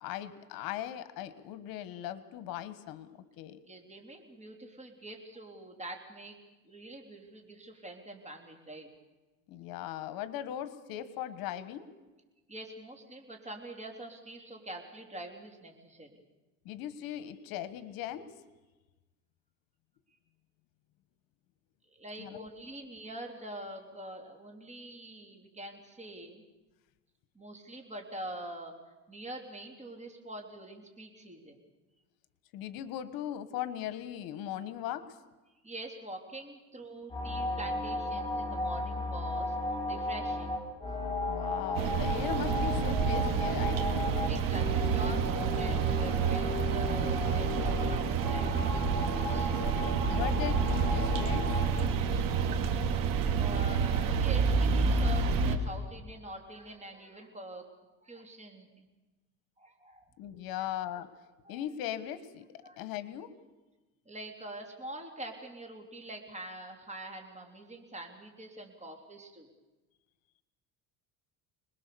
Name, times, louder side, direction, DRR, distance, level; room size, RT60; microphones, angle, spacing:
voice 1, 0.0-3.1 3.4-3.6 9.5-11.9 16.6-18.3 22.2-22.4 32.5-35.1 41.3-44.1 50.1-52.2 60.2-61.1 61.5-62.5 62.8-63.3, left 11 dB, 70° left, 13 dB, 1.4 m, -39 dB
voice 2, 3.7-6.4 6.7-8.9 12.5-16.2 21.9-26.4 27.4-28.7 29.1-31.6 35.6-39.6 39.9-40.5 44.2-49.5 53.3-57.7 58.0-58.9 59.6-60.1 60.6-60.7 61.5-61.7 62.6-62.8 64.1-69.5, right 1 dB, 20° right, 3 dB, 3.4 m, -45 dB
sound 1, 37.1-51.6, left 1 dB, 15° left, 5.8 m, -34 dB
sound 2, 41.7-55.6, right 5 dB, 65° right, 2.4 m, -29 dB
26.5 x 20.5 x 6.9 m, 1.2 s
cardioid pair, 125°, 36 cm